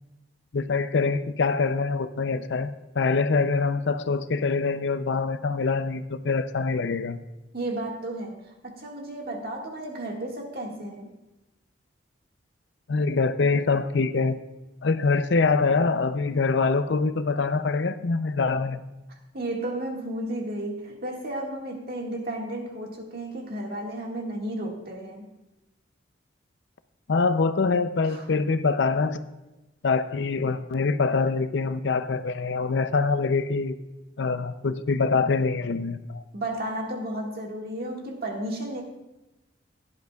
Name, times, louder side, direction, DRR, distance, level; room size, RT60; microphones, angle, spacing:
voice 1, 0.5-2.7 3.0-7.2 12.9-14.4 14.8-18.8 27.1-29.2 29.8-33.8 34.2-36.2, left 4 dB, 65° left, 11 dB, 0.5 m, -24 dB
voice 2, 7.5-8.4 8.6-11.1 19.3-25.3 28.1-28.2 36.3-38.8, right 1 dB, 50° right, 0 dB, 1.8 m, -33 dB
16.5 x 10.5 x 2.4 m, 1.0 s
head